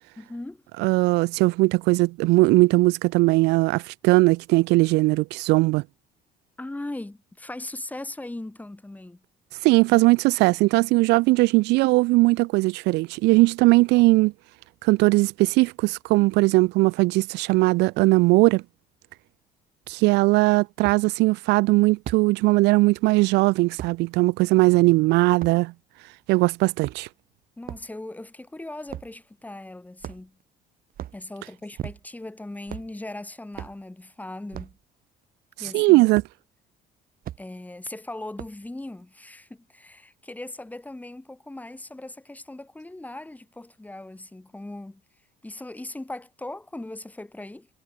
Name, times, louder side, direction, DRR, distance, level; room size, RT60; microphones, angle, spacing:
voice 1, 0.2-0.6 6.6-9.2 27.6-30.4 31.1-34.8 35.6-36.1 37.4-45.0 45.4-47.7, left 2 dB, 10° left, 3.3 m, -39 dB
voice 2, 0.8-5.8 9.6-14.3 14.8-18.6 19.9-25.7 26.3-27.1 35.7-36.2, right 22 dB, 90° right, 0.5 m, -19 dB
sound 1, 19.8-19.9 20.8-21.0 22.1-22.3 23.8-24.0 25.4-25.6 26.7-27.2 27.6-27.9 28.9-29.1 30.0-30.4 30.9-31.2 31.8-32.2 32.7-32.9 33.5-33.8 34.5-34.8 36.2-36.3 37.2-37.4 38.4-38.7, right 12 dB, 60° right, 1.9 m, -37 dB
cardioid pair, 110°, 17 cm